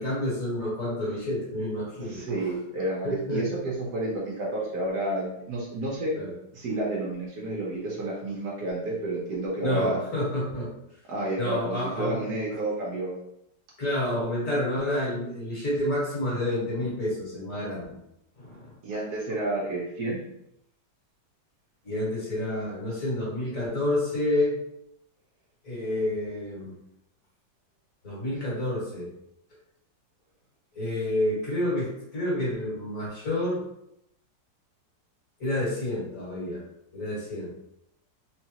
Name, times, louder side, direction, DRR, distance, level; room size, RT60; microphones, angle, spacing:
voice 1, 0.0-2.2 3.0-3.6 6.2-6.3 9.6-10.7 11.4-12.2 13.8-18.0 18.4-18.7 21.8-24.6 25.6-26.7 28.0-29.1 30.8-33.6 35.4-36.6 36.9-37.5, left 1 dB, 45° left, -6 dB, 1.9 m, -29 dB
voice 2, 2.0-6.2 6.5-10.0 11.1-13.1 18.8-20.2, right 2 dB, 65° right, -4 dB, 1.4 m, -30 dB
3.8 x 3.4 x 2.9 m, 0.80 s
omnidirectional pair, 2.0 m